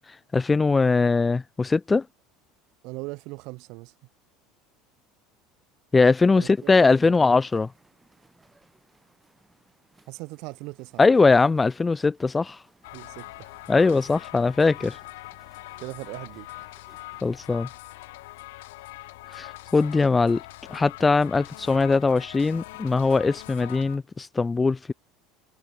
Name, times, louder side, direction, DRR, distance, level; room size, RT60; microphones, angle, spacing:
voice 1, 0.3-2.0 5.9-7.7 11.0-12.6 13.7-15.0 17.2-17.7 19.3-20.4 20.7-24.9, left 4 dB, 20° left, 0.3 m, -21 dB
voice 2, 2.8-3.9 6.3-7.1 10.1-11.0 12.9-13.6 14.9-15.0 15.8-16.5, right 25 dB, 65° right, 1.6 m, -39 dB
sound 1, 6.2-17.4, right 2 dB, 10° right, 5.1 m, -61 dB
sound 2, 12.8-24.0, left 20 dB, 80° left, 1.0 m, -43 dB
supercardioid pair, 95°, 0 cm